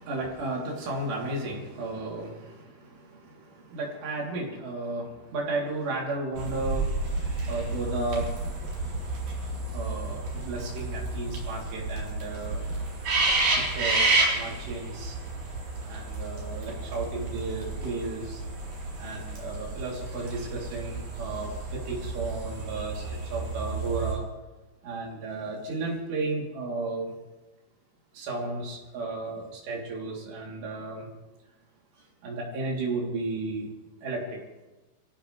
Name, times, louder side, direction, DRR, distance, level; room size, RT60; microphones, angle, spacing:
voice 1, 0.0-3.0 3.7-6.9 7.5-8.3 9.7-12.6 13.3-13.4 13.7-15.2 15.9-18.4 19.0-23.0 23.3-24.2 24.8-27.1 28.2-31.1 32.2-33.7 34.0-34.4, right 2 dB, 90° right, -3 dB, 5.6 m, -33 dB
sound 1, 6.4-24.2, right 2 dB, 45° right, 5.2 m, -31 dB
27.0 x 15.5 x 3.4 m, 1.1 s
omnidirectional pair, 4.7 m